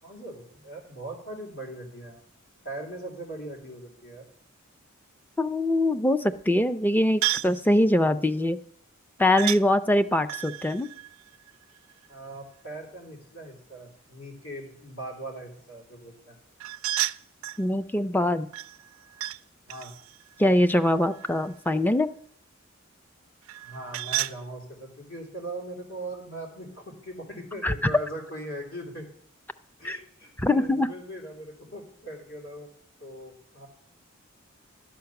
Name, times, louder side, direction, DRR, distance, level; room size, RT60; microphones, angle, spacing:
voice 1, 0.0-2.2 2.6-4.2 12.1-16.4 19.7-19.9 23.6-29.0 29.8-32.7 33.0-33.7, right 1 dB, 70° left, 0 dB, 3.1 m, -40 dB
voice 2, 5.4-8.6 9.2-10.9 17.6-18.5 20.4-22.1 27.6-27.9 29.8-30.0 30.4-30.9, left 1 dB, 10° left, 10 dB, 0.4 m, -23 dB
sound 1, 7.2-7.6 9.4-9.6 10.3-12.1 16.6-17.6 18.5-19.4 19.7-21.6 23.5-24.4, right 15 dB, 80° right, 0.3 m, -32 dB
11.5 x 7.9 x 5.9 m, 0.63 s
head